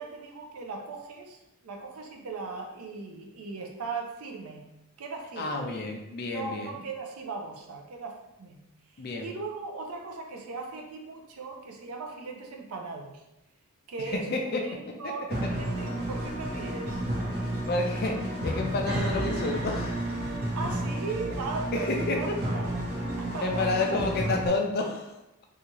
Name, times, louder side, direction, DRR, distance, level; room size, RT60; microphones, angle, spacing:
voice 1, 0.0-4.7 5.0-5.7 6.3-8.6 9.2-13.2 13.9-14.3 14.6-17.0 20.6-22.3 22.5-22.8 23.2-23.9, right 4 dB, 80° right, 2 dB, 0.5 m, -38 dB
voice 2, 5.4-6.8 9.0-9.3 14.1-14.6 15.0-15.1 17.3-20.1 21.7-22.3 23.2-25.1, left 2 dB, 45° left, 2 dB, 0.4 m, -30 dB
sound 1, 15.3-24.5, right 1 dB, 45° right, 0.7 m, -31 dB
2.7 x 2.3 x 2.9 m, 0.92 s
head